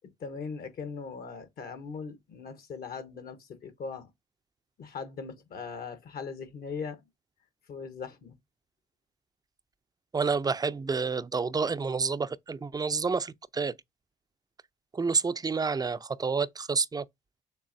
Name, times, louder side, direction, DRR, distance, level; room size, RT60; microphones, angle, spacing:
voice 1, 0.2-4.1 4.8-7.0 7.7-8.3, left 5 dB, 60° left, 1.1 m, -39 dB
voice 2, 10.1-13.7 14.9-17.0, right 4 dB, 20° right, 0.5 m, -29 dB
6.7 x 2.6 x 2.6 m
hypercardioid pair, 55°, 18 cm